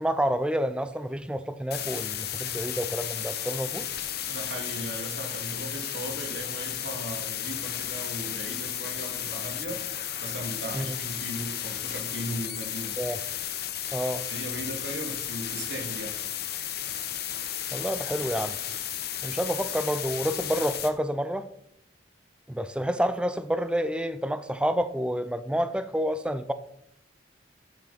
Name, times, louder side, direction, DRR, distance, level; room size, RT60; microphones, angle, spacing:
voice 1, 0.0-3.9 10.7-11.0 13.0-13.2 13.9-14.3 17.7-18.6 19.2-21.5 22.5-26.5, equal, 5° right, 0.5 m, -29 dB
sound 1, 1.7-20.9, left 10 dB, 55° left, 1.0 m, -34 dB
voice 2, 4.3-9.8 10.2-13.0 14.3-16.2, right 1 dB, 75° right, 2.2 m, -37 dB
11.5 x 7.6 x 4.1 m
head